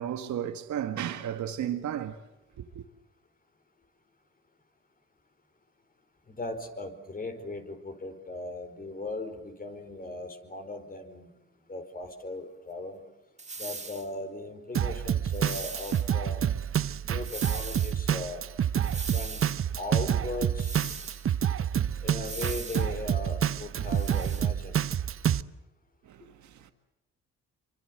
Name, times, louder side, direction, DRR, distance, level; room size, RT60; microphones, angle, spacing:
voice 1, 0.0-2.2 2.6-2.8 26.0-26.7, right 10 dB, 75° right, 1.8 m, -34 dB
voice 2, 6.3-11.3 11.7-13.0 13.6-16.4 17.0-18.4 18.8-19.4 19.8-20.8 22.0-24.8, left 2 dB, 30° left, 4.9 m, -38 dB
sound 1, 13.4-14.1 15.3-16.1 17.2-18.0 18.8-19.6 20.6-21.3 22.2-22.9 23.7-24.5, right 4 dB, 25° right, 1.9 m, -40 dB
Drum kit, 14.7-25.4, right 9 dB, 45° right, 0.9 m, -28 dB
27.0 x 25.0 x 7.9 m
cardioid pair, 90°, 30 cm